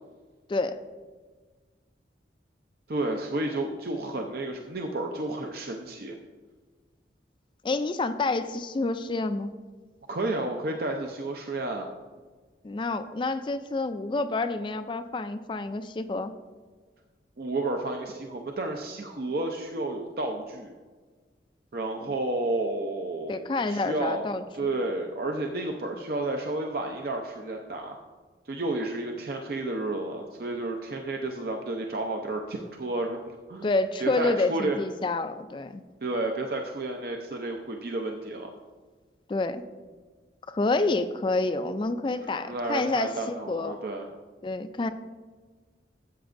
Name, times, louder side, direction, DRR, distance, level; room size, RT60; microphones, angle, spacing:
voice 1, 2.9-6.2 10.1-11.9 17.4-20.7 21.7-24.2 24.5-28.0 28.5-33.2 33.5-33.7 34.0-34.8 36.0-38.5 42.2-44.1, right 2 dB, 55° right, 2 dB, 0.6 m, -31 dB
voice 2, 7.6-9.5 12.6-16.3 22.0-22.1 23.3-24.7 33.6-35.8 39.3-39.6 40.5-43.8 44.4-44.9, left 3 dB, 25° left, 10 dB, 0.3 m, -28 dB
13.0 x 7.8 x 2.5 m, 1.4 s
head